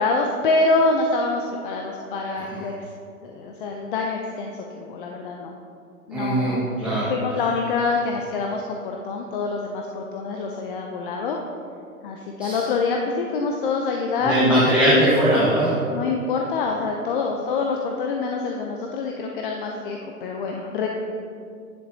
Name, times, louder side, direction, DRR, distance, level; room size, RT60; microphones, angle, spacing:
voice 1, 0.0-2.9 3.2-5.5 6.1-11.4 12.0-14.4 15.8-20.9, left 3 dB, 35° left, 1 dB, 0.6 m, -26 dB
voice 2, 6.1-7.1 12.4-12.6 14.2-15.8, equal, 5° right, -10 dB, 1.3 m, -20 dB
10.0 x 7.9 x 2.7 m, 2.4 s
hypercardioid pair, 130°, 45 cm